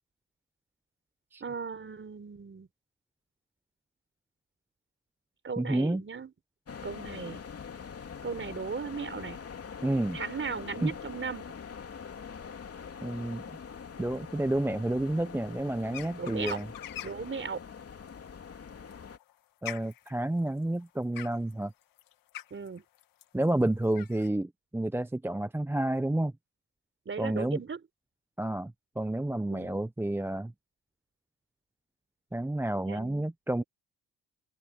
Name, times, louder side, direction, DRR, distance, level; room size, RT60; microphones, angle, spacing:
voice 1, 1.4-2.7 5.4-6.3 6.8-7.4 8.2-9.4 10.1-11.4 16.2-16.6 17.0-17.6 22.5-22.8 27.1-27.8 29.5-29.8 32.8-33.3, right 5 dB, 35° right, 4.4 m, -37 dB
voice 2, 5.6-6.0 9.8-10.2 10.8-10.9 13.0-13.4 14.0-16.7 19.6-21.7 23.3-26.3 27.2-27.6 28.4-30.5 32.3-33.6, right 1 dB, 5° right, 0.7 m, -30 dB
sound 1, 6.7-19.2, left 6 dB, 45° left, 3.1 m, -44 dB
sound 2, 15.9-17.3 18.7-24.3, left 13 dB, 75° left, 2.2 m, -44 dB
supercardioid pair, 70°, 34 cm